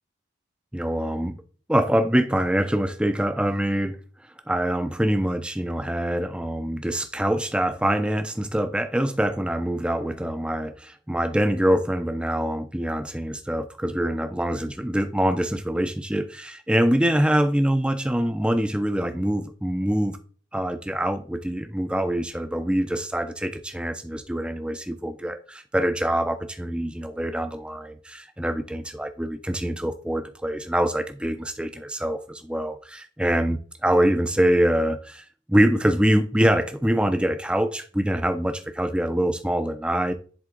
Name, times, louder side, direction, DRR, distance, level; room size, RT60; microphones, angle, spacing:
voice 1, 0.7-1.4 1.7-4.0 4.5-20.2 20.5-40.1, right 1 dB, 5° right, 0.5 m, -24 dB
10.5 x 3.5 x 3.8 m
head